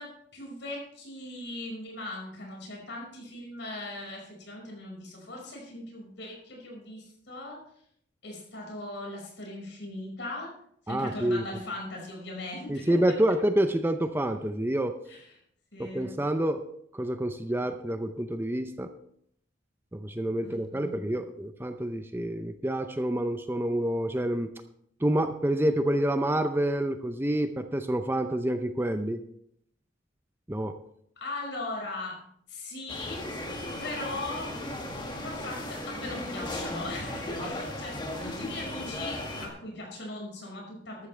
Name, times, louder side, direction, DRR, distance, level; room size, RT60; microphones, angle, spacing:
voice 1, 0.0-7.6 8.2-10.5 10.9-13.0 15.1-15.2 15.7-16.1 20.4-21.0 31.2-32.2 32.5-33.2 33.8-34.5 35.2-41.1, left 2 dB, 70° left, -1 dB, 5.3 m, -39 dB
voice 2, 10.9-11.4 12.7-15.0 15.8-16.7 16.9-18.9 19.9-24.5 25.0-29.2 30.5-30.8, right 1 dB, 10° right, 8 dB, 0.6 m, -28 dB
sound 1, 32.9-39.5, left 1 dB, 25° left, 1.9 m, -36 dB
13.0 x 13.0 x 3.3 m, 0.69 s
head